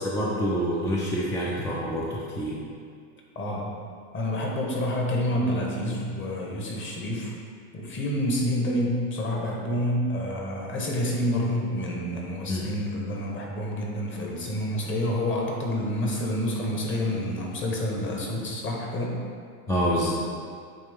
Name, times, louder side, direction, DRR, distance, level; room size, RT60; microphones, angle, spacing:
voice 1, 0.0-2.6 12.5-12.7 19.7-20.1, equal, 10° left, -6 dB, 0.4 m, -27 dB
voice 2, 3.3-3.7 4.1-7.3 7.7-19.2, left 1 dB, 30° left, -1 dB, 1.2 m, -28 dB
8.5 x 3.5 x 3.6 m, 2.2 s
supercardioid pair, 130°, 42 cm